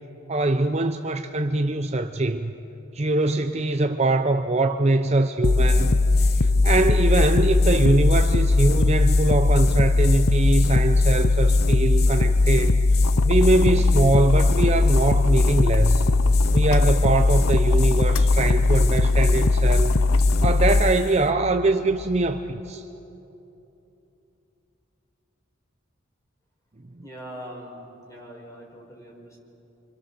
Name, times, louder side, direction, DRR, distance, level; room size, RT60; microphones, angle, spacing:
voice 1, 0.3-2.5 2.9-5.9 6.2-12.8 13.2-16.1 16.5-19.9 20.4-22.8, right 2 dB, 30° right, 6 dB, 0.7 m, -23 dB
sound 1, 5.4-22.5, left 2 dB, 50° left, 0.5 m, -19 dB
sound 2, 13.0-20.8, left 5 dB, 85° left, 0.6 m, -35 dB
voice 2, 27.0-29.4, equal, 15° left, -1 dB, 4.8 m, -42 dB
29.0 x 26.0 x 6.9 m, 2.9 s
head